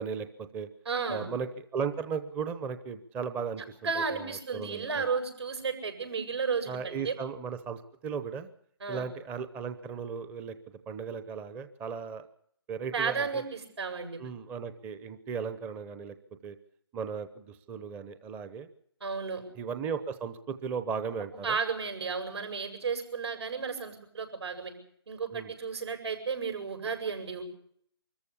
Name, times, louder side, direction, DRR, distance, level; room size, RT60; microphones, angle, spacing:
voice 1, 0.0-0.7 1.1-3.6 4.0-5.1 6.7-8.5 8.9-10.6 10.9-12.2 12.7-13.4 14.2-16.2 16.4-16.6 16.9-18.7 19.6-21.6 25.3-25.5, right 6 dB, 10° right, 11 dB, 0.8 m, -36 dB
voice 2, 0.9-1.3 3.8-7.2 8.8-9.1 12.9-14.2 19.0-19.4 21.3-24.7 25.1-27.4, right 5 dB, 75° right, 5 dB, 7.8 m, -33 dB
24.5 x 14.5 x 8.5 m, 0.66 s
hypercardioid pair, 160°, 14 cm